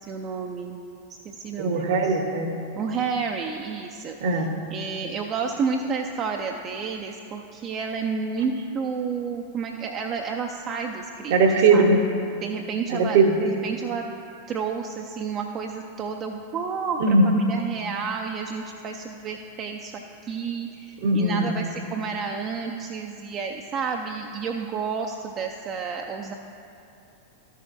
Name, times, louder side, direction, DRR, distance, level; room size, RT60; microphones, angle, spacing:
voice 1, 0.1-0.8 1.1-2.2 2.8-11.4 11.7-12.0 12.4-14.1 14.5-26.3, right 5 dB, 30° right, 2 dB, 0.4 m, -31 dB
voice 2, 1.6-2.6 4.2-4.5 11.3-12.0 12.9-13.4 17.0-17.3 21.0-21.6, right 3 dB, 50° right, 5 dB, 0.9 m, -20 dB
14.0 x 6.5 x 2.6 m, 2.7 s
figure-of-eight pair, 90°, 0 cm